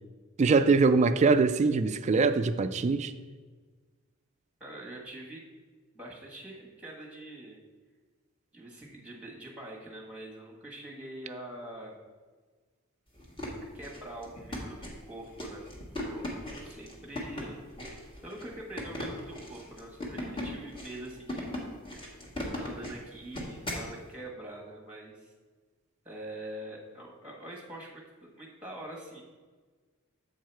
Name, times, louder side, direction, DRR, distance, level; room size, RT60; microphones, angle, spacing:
voice 1, 0.4-3.1, right 4 dB, 35° right, 0.3 m, -23 dB
voice 2, 4.6-5.4 5.9-7.6 8.5-12.0 13.7-15.6 16.0-17.6 18.2-21.7 22.4-25.3 26.0-29.2, right 1 dB, 5° right, 1.3 m, -44 dB
sound 1, 13.2-23.9, left 1 dB, 25° left, 1.3 m, -38 dB
7.5 x 4.7 x 4.5 m
head